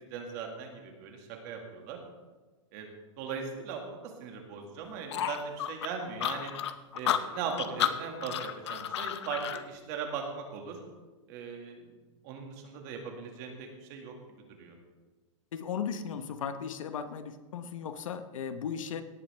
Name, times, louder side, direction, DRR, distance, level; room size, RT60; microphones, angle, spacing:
voice 1, 0.1-2.0 2.7-2.9 3.2-6.5 6.9-10.8 11.3-11.9 12.2-14.1 14.6-14.7, right 6 dB, 35° right, 2 dB, 2.0 m, -39 dB
sound 1, 5.1-9.6, left 11 dB, 55° left, 0.7 m, -32 dB
voice 2, 15.5-19.0, left 7 dB, 80° left, 10 dB, 1.1 m, -36 dB
17.5 x 9.0 x 3.4 m, 1.2 s
supercardioid pair, 170°, 17 cm